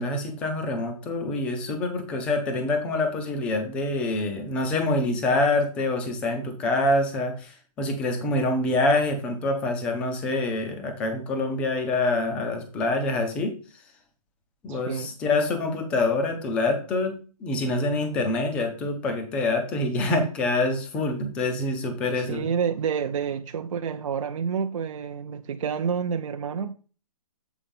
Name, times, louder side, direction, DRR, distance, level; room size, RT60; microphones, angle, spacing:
voice 1, 0.0-13.6 14.6-17.1 17.4-22.5, left 2 dB, 5° left, 0.5 m, -26 dB
voice 2, 14.7-15.1 22.1-26.7, right 7 dB, 55° right, 0.6 m, -29 dB
7.2 x 4.2 x 5.2 m
hypercardioid pair, 170°, 20 cm